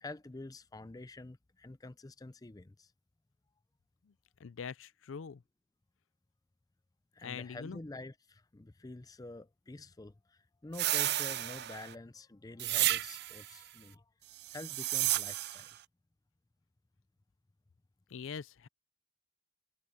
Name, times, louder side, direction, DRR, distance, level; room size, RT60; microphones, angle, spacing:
voice 1, 0.0-2.9 7.1-14.0 14.5-15.8, left 2 dB, 20° left, 0.5 m, -48 dB
voice 2, 4.4-5.4 7.2-7.8 18.1-18.7, left 6 dB, 85° left, 0.5 m, -43 dB
sound 1, 10.7-11.9 12.6-13.5 14.4-15.7, right 15 dB, 55° right, 0.4 m, -32 dB
head